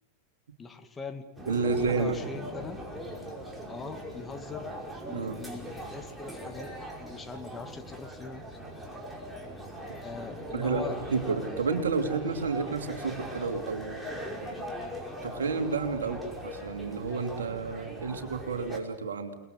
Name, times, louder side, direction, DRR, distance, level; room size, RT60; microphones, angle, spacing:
voice 1, 0.6-1.3 1.6-2.8 3.7-6.7 7.0-8.4 10.0-11.0 16.0-16.2, left 4 dB, 15° left, 6 dB, 2.2 m, -41 dB
sound 1, 1.4-18.8, equal, ahead, 5.4 m, -40 dB
voice 2, 1.5-2.2 5.1-5.4 10.5-14.0 15.2-19.4, right 4 dB, 65° right, 6 dB, 3.0 m, -30 dB
30.0 x 20.5 x 8.0 m, 0.96 s
figure-of-eight pair, 90°, 0 cm